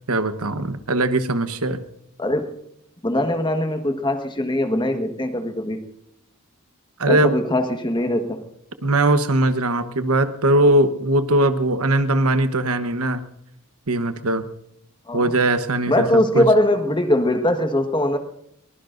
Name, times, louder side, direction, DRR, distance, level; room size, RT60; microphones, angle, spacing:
voice 1, 0.1-1.8 7.0-7.4 8.8-13.2 13.9-14.4 15.1-16.1 16.3-16.4, right 1 dB, 75° right, 9 dB, 1.2 m, -20 dB
voice 2, 2.2-2.6 3.0-5.8 7.0-8.4 15.1-15.3 15.9-18.2, left 1 dB, 20° left, 6 dB, 1.5 m, -21 dB
22.5 x 20.0 x 2.6 m, 0.78 s
head